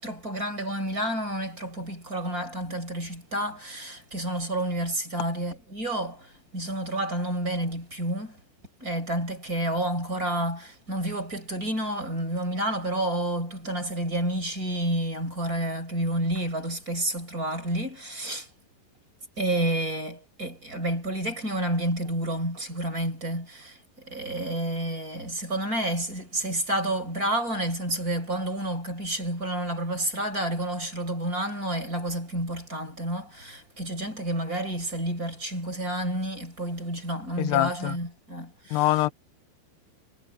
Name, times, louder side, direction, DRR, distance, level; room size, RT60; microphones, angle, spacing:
voice 1, 0.0-8.4 8.8-18.5 19.4-38.9, right 1 dB, 20° right, 5.7 m, -30 dB
voice 2, 37.4-38.0 38.7-39.1, left 16 dB, 75° left, 2.7 m, -24 dB
omnidirectional pair, 5.5 m